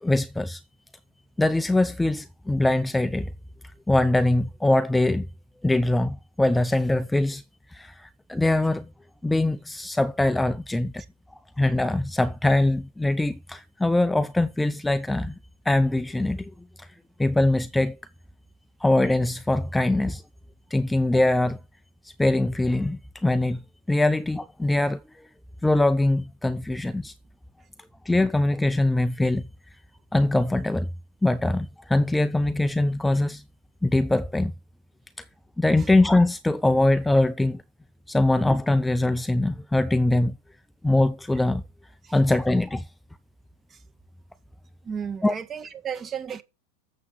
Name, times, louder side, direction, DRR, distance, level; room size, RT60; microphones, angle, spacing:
voice 1, 0.0-0.6 1.4-3.3 3.9-5.3 5.6-7.4 7.7-8.9 9.2-11.0 11.6-15.4 15.7-16.5 16.8-16.9 17.2-18.0 18.8-20.2 20.7-21.6 22.0-23.6 23.9-25.0 25.6-27.1 28.1-29.4 30.1-30.9 31.2-33.4 33.8-34.5 35.2-35.3 35.6-37.6 38.1-40.4 40.8-41.6 42.1-42.9 45.2-45.3, left 2 dB, 5° left, 0.5 m, -22 dB
voice 2, 44.8-46.4, right 7 dB, 25° right, 1.6 m, -34 dB
7.9 x 7.1 x 6.2 m
hypercardioid pair, 105°, 0 cm